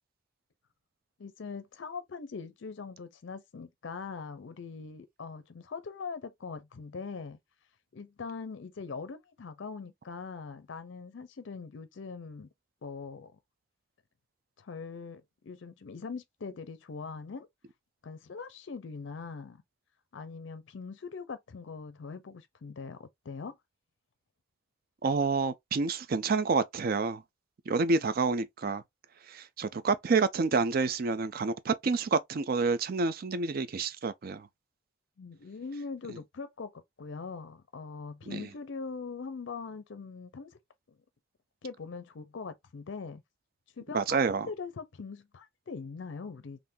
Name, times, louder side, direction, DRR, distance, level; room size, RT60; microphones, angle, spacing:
voice 1, 1.2-7.4 7.9-12.5 12.8-13.4 14.6-17.5 18.0-19.6 20.1-23.6 35.2-40.6 41.6-43.2 43.8-44.1 44.5-46.6, left 4 dB, 60° left, 0.5 m, -42 dB
voice 2, 25.0-27.2 27.7-28.8 29.3-34.5 38.3-38.5 43.9-44.5, right 4 dB, 45° right, 0.4 m, -28 dB
3.6 x 2.5 x 2.6 m
head